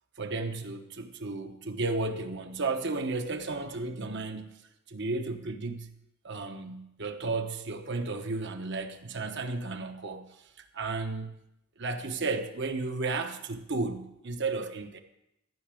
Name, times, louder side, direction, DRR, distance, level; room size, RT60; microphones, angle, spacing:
voice 1, 0.2-4.5 4.9-5.9 6.2-10.3 10.7-11.3 11.8-15.0, right 3 dB, 60° right, 1.1 m, -33 dB
14.0 x 6.0 x 7.6 m
head